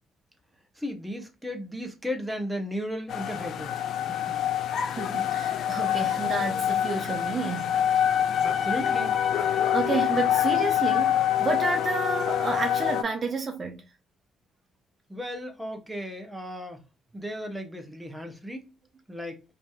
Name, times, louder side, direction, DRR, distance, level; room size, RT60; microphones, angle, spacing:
voice 1, 0.8-3.8 4.1-4.3 8.4-9.2 15.1-16.8 17.1-18.7 19.1-19.4, equal, 5° right, 1.0 m, -35 dB
sound 1, 3.1-13.0, left 10 dB, 65° left, 0.4 m, -26 dB
voice 2, 4.9-7.7 9.7-13.8, right 3 dB, 40° right, 0.7 m, -30 dB
3.2 x 2.8 x 2.3 m
supercardioid pair, 75°, 0 cm